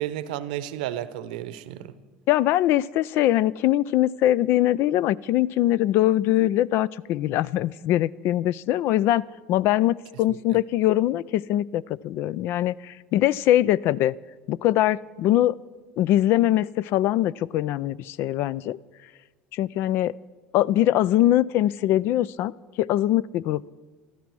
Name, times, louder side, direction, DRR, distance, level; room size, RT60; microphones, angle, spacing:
voice 1, 0.0-1.9 10.3-10.6, right 12 dB, 85° right, 15 dB, 0.7 m, -32 dB
voice 2, 2.3-14.1 14.5-15.6 16.0-18.8 19.5-20.1 20.5-22.5 22.8-23.7, left 13 dB, 60° left, 22 dB, 0.4 m, -22 dB
14.5 x 13.0 x 6.1 m, 1.4 s
supercardioid pair, 95°, 4 cm